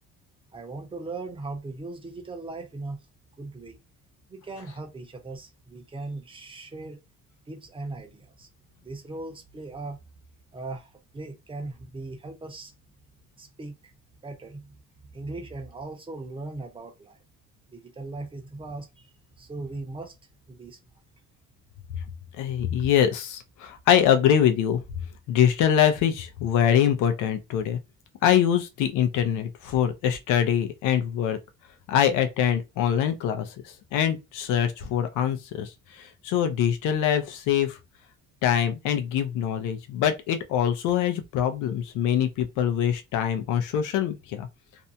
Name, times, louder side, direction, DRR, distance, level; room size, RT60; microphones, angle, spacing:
voice 1, 0.5-3.0 3.4-3.8 4.3-7.0 7.5-8.5 8.8-10.0 10.5-12.7 13.4-13.9 14.2-14.7 15.1-17.2 17.7-20.1 20.5-20.8, right 2 dB, 15° right, 0.7 m, -38 dB
voice 2, 22.4-24.8 25.3-27.8 28.2-31.4 31.9-33.5 33.9-35.7 36.2-37.8 38.4-44.5, left 9 dB, 85° left, 0.6 m, -23 dB
2.6 x 2.2 x 2.7 m
cardioid pair, 115°, 30 cm